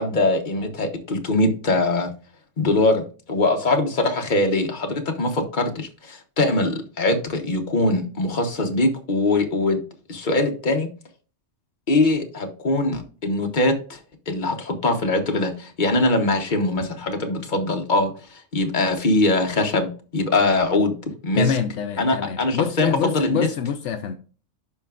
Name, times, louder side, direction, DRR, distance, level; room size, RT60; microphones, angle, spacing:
voice 1, 0.0-2.1 2.6-3.0 3.3-9.8 10.1-10.9 11.9-14.0 14.3-20.9 21.2-21.5 22.0-23.5, left 2 dB, 40° left, 1.3 m, -22 dB
voice 2, 21.4-24.1, left 7 dB, 75° left, 0.9 m, -26 dB
11.5 x 4.5 x 2.5 m
omnidirectional pair, 1.2 m